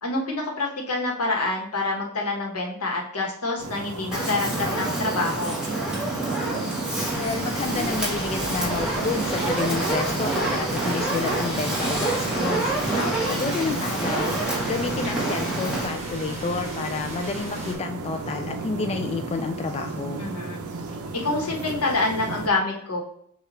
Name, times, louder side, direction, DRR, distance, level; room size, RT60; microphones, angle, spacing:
voice 1, 0.0-5.6 13.0-13.5 20.2-20.6 21.2-23.0, left 2 dB, 85° left, 0 dB, 1.2 m, -27 dB
sound 1, 3.6-22.5, right 3 dB, 75° right, 0.6 m, -35 dB
Fire, 4.1-15.9, right 2 dB, 5° right, 1.2 m, -27 dB
voice 2, 7.1-12.7 13.3-14.4 14.7-20.2, left 4 dB, 30° left, 5 dB, 0.3 m, -30 dB
sound 2, 7.1-17.7, right 1 dB, 30° right, 1.3 m, -38 dB
6.5 x 2.4 x 3.1 m, 0.66 s
head